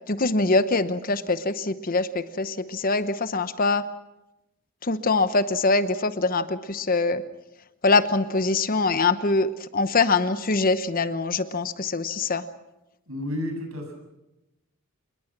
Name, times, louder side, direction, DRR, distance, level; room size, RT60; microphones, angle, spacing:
voice 1, 0.1-3.9 4.8-7.2 7.8-12.4, left 3 dB, 40° left, 12 dB, 1.0 m, -23 dB
voice 2, 13.1-13.9, left 1 dB, 75° right, 3 dB, 7.5 m, -31 dB
27.0 x 21.5 x 6.2 m, 0.94 s
head